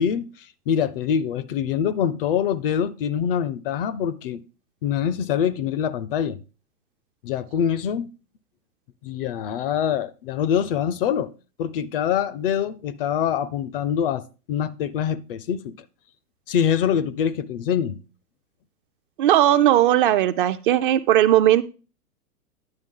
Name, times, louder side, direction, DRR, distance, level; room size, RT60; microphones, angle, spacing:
voice 1, 0.0-4.4 4.8-6.4 7.2-8.1 9.0-11.3 11.6-14.2 14.5-15.7 16.5-18.0, left 8 dB, 40° left, 0.5 m, -24 dB
voice 2, 19.2-21.6, right 12 dB, 35° right, 0.4 m, -17 dB
9.8 x 7.0 x 3.7 m
hypercardioid pair, 120°, 46 cm